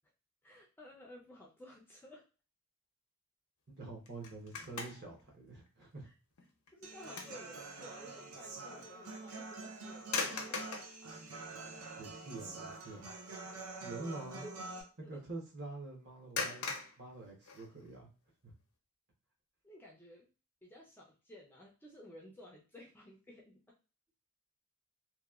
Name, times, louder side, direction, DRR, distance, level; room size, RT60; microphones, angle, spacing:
voice 1, 0.4-2.2 6.0-6.1 6.7-10.6 14.4-14.5 15.0-15.2 19.6-20.3 20.6-23.6, left 1 dB, 10° left, -2 dB, 0.3 m, -54 dB
voice 2, 3.8-6.1 12.0-13.1 13.8-14.4 15.0-16.7 17.0-18.1 18.4-18.5, right 2 dB, 50° right, -1 dB, 0.8 m, -46 dB
sound 1, 4.1-5.2 5.7-5.8 6.4-7.5 7.8-7.9 10.0-11.0 11.8-11.9 12.3-12.6 12.9-13.1 16.3-18.0, left 4 dB, 80° left, 0.6 m, -40 dB
Human voice / Acoustic guitar, 6.8-14.8, right 3 dB, 80° right, 0.6 m, -47 dB
2.8 x 2.1 x 2.3 m, 0.35 s
head